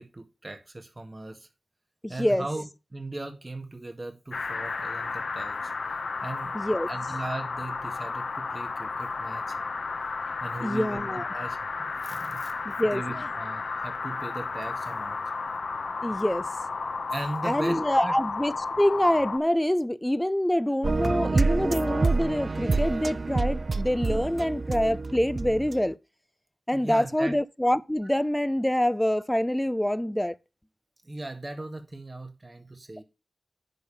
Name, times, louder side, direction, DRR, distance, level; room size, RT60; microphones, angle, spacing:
voice 1, 0.0-1.5 2.1-5.7 6.2-6.6 6.9-9.6 10.4-12.5 12.9-15.3 17.1-18.1 26.7-27.3 31.0-33.0, right 2 dB, 35° right, 1.8 m, -38 dB
voice 2, 2.0-2.5 6.5-6.9 10.6-11.3 12.6-13.0 16.0-16.5 17.4-26.0 26.7-30.3, left 1 dB, 10° left, 0.6 m, -26 dB
sound 1, 4.3-19.4, left 4 dB, 85° left, 0.8 m, -33 dB
sound 2, 20.8-25.8, right 3 dB, 60° right, 0.4 m, -27 dB
10.5 x 3.6 x 6.9 m
cardioid pair, 50°, 0 cm